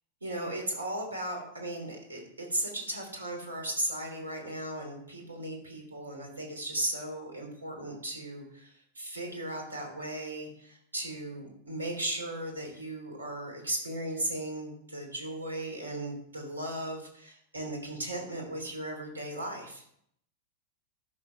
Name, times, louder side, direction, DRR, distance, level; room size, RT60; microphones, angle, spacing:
voice 1, 0.2-19.8, right 1 dB, 75° right, 2 dB, 3.1 m, -36 dB
11.0 x 6.9 x 4.7 m, 0.68 s
figure-of-eight pair, 90°, 0 cm